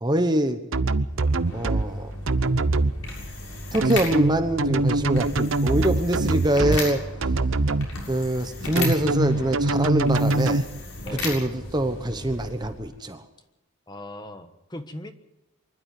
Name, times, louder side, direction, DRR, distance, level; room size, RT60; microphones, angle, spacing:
voice 1, 0.0-0.6 1.5-2.1 3.7-7.0 8.1-10.7 11.2-13.2, right 1 dB, 20° right, 8 dB, 1.1 m, -24 dB
sound 1, 0.7-1.8 2.3-2.9 3.8-6.8 7.2-7.9 8.8-10.6, right 2 dB, 60° right, 0.8 m, -23 dB
sound 2, 1.0-12.9, left 2 dB, 65° left, 7.1 m, -35 dB
voice 2, 13.9-15.1, left 1 dB, 20° left, 8 dB, 1.3 m, -39 dB
24.5 x 12.0 x 9.5 m, 0.91 s
head